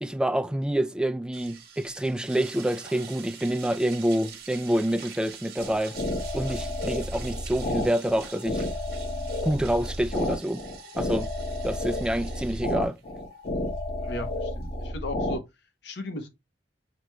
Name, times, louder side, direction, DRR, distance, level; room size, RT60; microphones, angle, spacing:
voice 1, 0.0-6.0 6.3-8.6 9.4-10.6 11.0-11.3 11.6-13.0, right 1 dB, 5° right, 0.3 m, -27 dB
sound 1, 1.3-14.9, right 7 dB, 60° right, 1.0 m, -46 dB
sound 2, 5.6-15.4, left 1 dB, 50° left, 0.9 m, -31 dB
voice 2, 14.1-15.4 15.8-16.3, left 2 dB, 70° left, 0.7 m, -36 dB
6.0 x 2.2 x 3.0 m
head